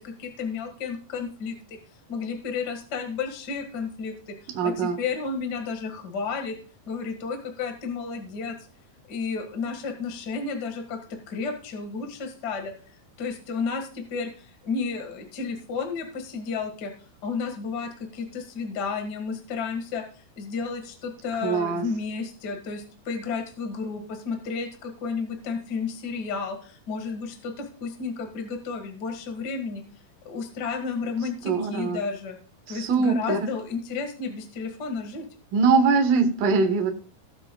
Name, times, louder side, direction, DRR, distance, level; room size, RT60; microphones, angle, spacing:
voice 1, 0.0-1.8 2.1-6.6 6.9-8.5 9.1-12.7 13.2-16.9 17.2-29.8 30.2-32.4 32.7-35.2, left 5 dB, 45° left, 5 dB, 1.3 m, -32 dB
voice 2, 4.6-5.0 21.4-21.8 31.4-32.0 32.7-33.5 35.5-36.9, right 4 dB, 70° right, 5 dB, 2.9 m, -22 dB
18.0 x 7.6 x 2.3 m, 0.38 s
omnidirectional pair, 4.3 m